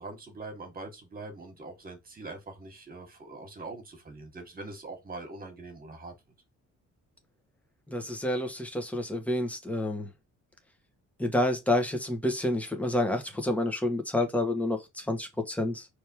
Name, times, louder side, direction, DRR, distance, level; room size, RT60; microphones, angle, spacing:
voice 1, 0.0-6.1, right 3 dB, 30° right, 1.8 m, -43 dB
voice 2, 7.9-10.1 11.2-15.9, left 1 dB, 5° left, 1.2 m, -29 dB
6.3 x 3.5 x 4.6 m
wide cardioid pair, 170°, 30 cm